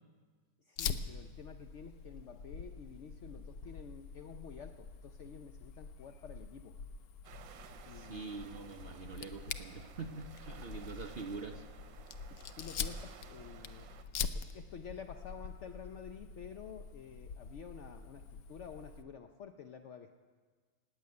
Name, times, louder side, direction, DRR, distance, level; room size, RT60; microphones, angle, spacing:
voice 1, 0.7-6.8 7.9-8.4 12.3-13.9 14.3-20.1, left 7 dB, 85° left, 7 dB, 0.6 m, -50 dB
Fire, 0.8-19.0, left 6 dB, 65° left, 1.0 m, -45 dB
sound 1, 7.2-14.0, right 8 dB, 85° right, 1.6 m, -55 dB
voice 2, 7.9-11.6, right 4 dB, 50° right, 4 dB, 0.7 m, -44 dB
17.5 x 8.1 x 9.4 m, 1.5 s
omnidirectional pair, 2.0 m